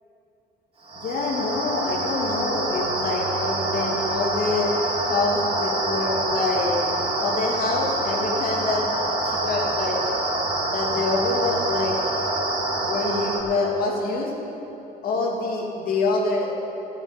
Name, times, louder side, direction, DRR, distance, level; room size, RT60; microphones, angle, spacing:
sound 1, 0.8-13.4, right 2 dB, 30° right, 2.6 m, -26 dB
voice 1, 1.0-4.7 5.0-6.8 7.2-8.9 9.3-10.0 10.7-12.0 12.8-14.3 15.0-16.5, left 3 dB, 60° left, -1 dB, 2.7 m, -26 dB
12.5 x 7.3 x 9.7 m, 3.0 s
cardioid pair, 110°, 17 cm